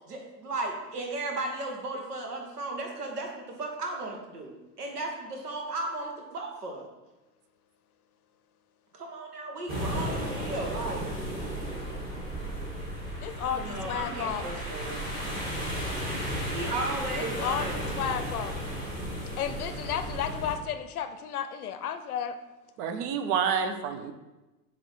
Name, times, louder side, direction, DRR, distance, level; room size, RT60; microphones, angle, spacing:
voice 1, 0.1-6.9 8.9-11.0 13.3-15.0 16.5-18.0, right 2 dB, 70° right, 2 dB, 1.4 m, -35 dB
sound 1, 9.7-20.6, equal, 20° right, 2.1 m, -34 dB
voice 2, 13.2-14.5 17.1-18.6 19.4-22.4, left 8 dB, 65° left, 10 dB, 0.7 m, -33 dB
voice 3, 22.8-24.1, right 7 dB, 35° right, 8 dB, 0.6 m, -28 dB
7.6 x 3.1 x 4.7 m, 1.1 s
figure-of-eight pair, 90°, 48 cm